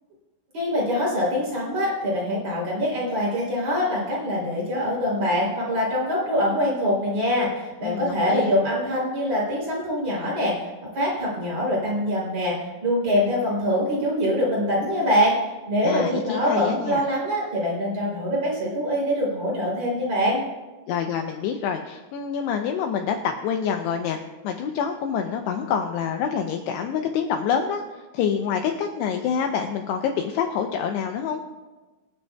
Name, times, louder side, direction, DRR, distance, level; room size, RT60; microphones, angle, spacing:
voice 1, 0.5-10.7 10.9-15.4 15.7-20.4, equal, 35° right, -4 dB, 4.0 m, -24 dB
voice 2, 7.8-8.5 15.8-17.0 20.9-24.2 24.4-31.4, left 7 dB, 80° left, 5 dB, 2.5 m, -27 dB
25.5 x 9.0 x 2.3 m, 1.2 s
omnidirectional pair, 5.4 m